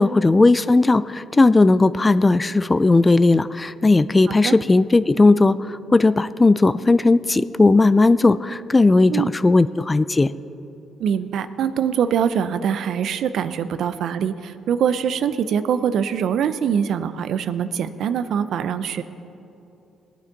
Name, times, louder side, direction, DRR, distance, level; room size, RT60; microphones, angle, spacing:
voice 1, 0.0-10.3, left 3 dB, 20° left, 15 dB, 0.3 m, -16 dB
voice 2, 4.3-4.6 9.1-9.3 11.0-19.0, right 8 dB, 70° right, 12 dB, 0.5 m, -23 dB
19.0 x 9.1 x 4.0 m, 2.9 s
cardioid pair, 90°, 0 cm